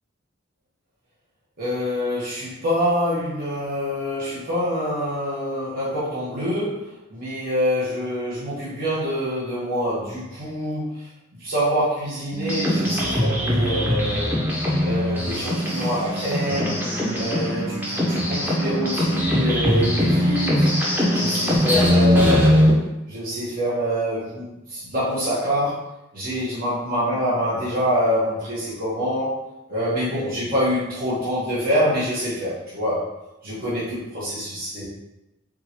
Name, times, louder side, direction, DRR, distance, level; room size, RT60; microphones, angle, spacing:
voice 1, 1.6-11.0 11.4-14.3 14.8-16.8 17.2-20.7 21.1-22.8 23.1-25.9 26.1-29.3 29.7-33.1 33.4-34.8, equal, 45° right, -10 dB, 1.2 m, -25 dB
sound 1, 12.3-22.7, equal, 10° right, 0.8 m, -21 dB
3.8 x 3.7 x 3.0 m, 0.93 s
head